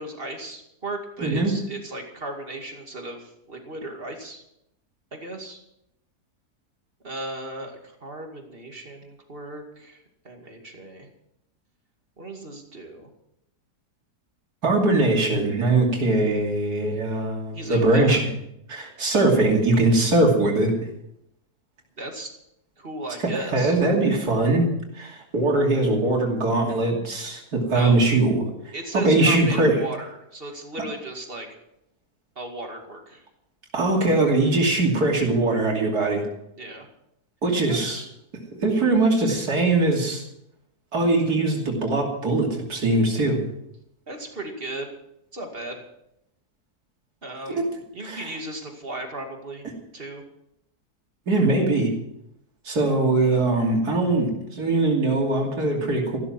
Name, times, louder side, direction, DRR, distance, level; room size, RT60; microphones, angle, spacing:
voice 1, 0.0-4.4 5.1-5.6 7.0-10.0 10.2-11.1 12.2-13.1 17.5-18.2 22.0-22.3 22.8-23.8 27.7-28.0 28.7-31.5 32.4-33.2 36.6-36.9 37.7-38.1 44.1-44.9 45.3-45.8 47.2-47.6 47.9-49.7 49.9-50.2, right 2 dB, 35° right, 3 dB, 2.5 m, -36 dB
voice 2, 1.2-1.5 14.6-18.2 18.7-20.7 23.2-24.7 24.9-29.8 33.7-36.2 37.4-38.0 38.6-40.2 40.9-43.4 47.5-47.7 48.0-48.4 51.3-51.9 52.6-56.2, right 2 dB, 85° right, -1 dB, 3.3 m, -21 dB
15.0 x 12.5 x 6.0 m, 0.81 s
omnidirectional pair, 1.6 m